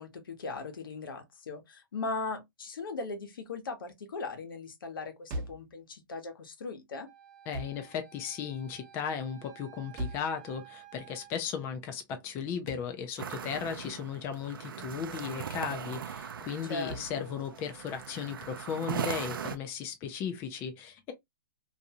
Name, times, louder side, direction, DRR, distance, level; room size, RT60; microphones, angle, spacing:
voice 1, 0.0-7.1 16.7-17.3, left 3 dB, 85° left, 1.0 m, -39 dB
sound 1, 5.3-5.7 7.5-7.8 10.0-10.3 12.7-12.9 14.8-15.1 16.9-17.1, equal, 30° right, 0.8 m, -39 dB
Wind instrument woodwind instrument, 7.1-11.3, right 12 dB, 55° right, 0.9 m, -53 dB
voice 2, 7.5-21.1, left 7 dB, 20° left, 0.4 m, -36 dB
sound 2, 13.2-19.6, right 7 dB, 85° right, 0.5 m, -39 dB
2.6 x 2.2 x 2.7 m
hypercardioid pair, 155°, 11 cm